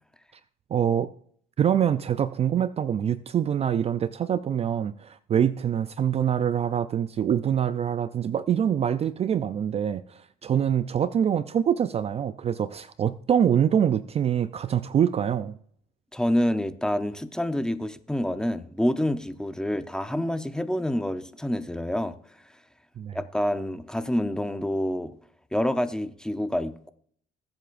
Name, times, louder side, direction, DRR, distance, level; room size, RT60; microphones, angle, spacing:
voice 1, 0.7-1.1 1.6-15.6 23.0-23.2, right 9 dB, 35° right, 0.4 m, -25 dB
voice 2, 16.1-22.2 23.1-25.2 25.5-26.9, left 1 dB, 5° left, 0.7 m, -27 dB
21.5 x 7.8 x 2.6 m
cardioid pair, 110°, 17 cm